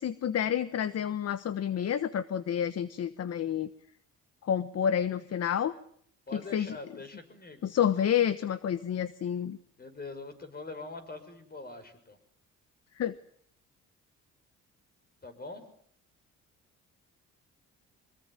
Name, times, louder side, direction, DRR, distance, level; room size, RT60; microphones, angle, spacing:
voice 1, 0.0-3.7 4.4-5.7 6.3-6.8 7.6-9.6 12.9-13.1, left 9 dB, 55° left, 14 dB, 1.2 m, -29 dB
voice 2, 6.3-7.7 9.8-12.2 15.2-15.6, left 3 dB, 30° left, 9 dB, 6.6 m, -43 dB
25.0 x 22.0 x 9.1 m, 0.64 s
cardioid pair, 90°, 30 cm